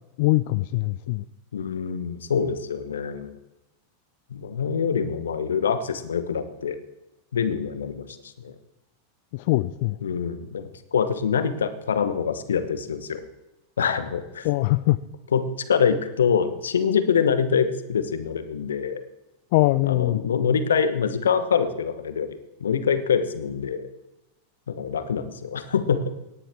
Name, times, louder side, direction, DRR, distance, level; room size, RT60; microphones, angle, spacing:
voice 1, 0.2-1.2 9.3-10.0 14.4-15.0 19.5-20.2, left 19 dB, 50° left, 14 dB, 0.3 m, -22 dB
voice 2, 1.5-3.4 4.3-6.8 7.3-8.1 8.4-8.5 10.0-13.2 13.8-14.5 15.3-15.4 15.7-19.0 19.8-23.9 24.7-26.0, left 7 dB, 65° left, 11 dB, 1.1 m, -25 dB
17.5 x 10.0 x 3.5 m, 0.99 s
figure-of-eight pair, 90°, 0 cm